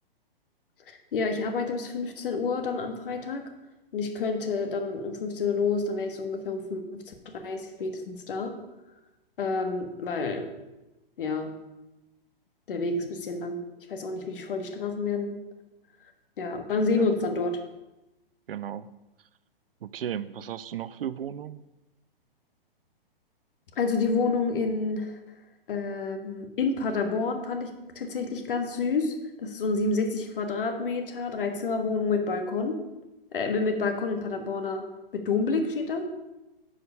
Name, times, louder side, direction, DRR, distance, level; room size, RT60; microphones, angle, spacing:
voice 1, 0.9-3.4 3.9-8.5 9.4-10.5 11.2-11.5 12.7-13.6 13.9-15.4 16.4-17.6 23.8-25.2 25.7-27.7 27.9-32.8 33.3-34.8 35.1-36.1, left 4 dB, 65° left, 6 dB, 1.5 m, -29 dB
voice 2, 18.5-18.9 19.8-21.6, right 9 dB, 70° right, 16 dB, 0.6 m, -35 dB
9.4 x 5.0 x 5.4 m, 1.0 s
hypercardioid pair, 130°, 29 cm